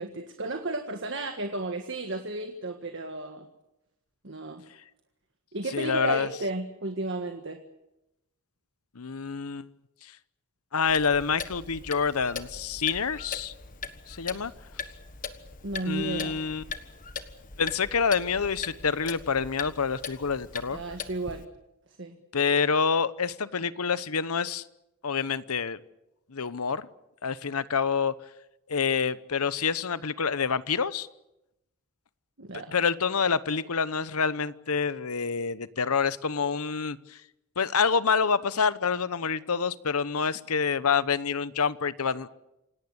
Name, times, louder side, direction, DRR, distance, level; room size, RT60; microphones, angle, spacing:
voice 1, 0.0-3.5 4.2-4.6 5.5-7.6 15.6-16.3 20.7-21.5 22.0-22.2 32.4-32.7 40.2-40.3, right 2 dB, 55° right, 5 dB, 1.7 m, -33 dB
voice 2, 5.7-6.3 8.9-9.7 10.0-10.1 10.7-13.5 14.1-14.5 15.8-16.6 17.6-20.8 22.3-24.6 25.0-25.8 26.3-26.9 27.2-28.1 28.7-31.1 32.7-37.2 37.6-42.3, left 5 dB, 85° left, 16 dB, 0.9 m, -27 dB
Clock, 10.9-21.4, left 5 dB, 35° left, 1.4 m, -40 dB
27.5 x 18.0 x 8.1 m, 0.90 s
head